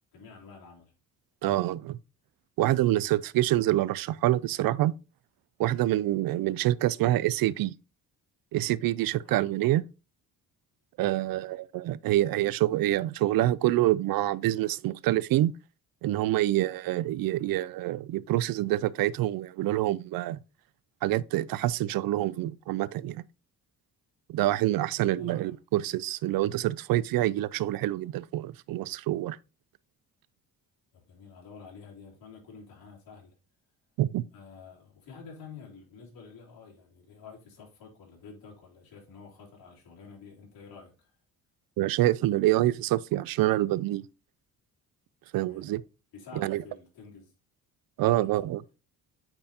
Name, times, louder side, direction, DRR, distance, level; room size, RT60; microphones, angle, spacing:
voice 1, 0.1-0.9 2.9-3.2 9.2-9.5 11.2-11.4 25.0-25.6 30.9-33.3 34.3-41.1 45.4-45.7 46.1-47.3 48.1-48.3, left 5 dB, 75° left, 3.2 m, -49 dB
voice 2, 1.4-2.0 2.6-4.9 5.6-7.7 8.5-9.8 11.0-15.5 16.0-20.4 21.0-23.2 24.3-29.4 34.0-34.2 41.8-44.0 45.3-45.8 46.4-46.6 48.0-48.6, right 15 dB, 70° right, 0.5 m, -26 dB
8.7 x 4.4 x 2.9 m
cardioid pair, 125°, 36 cm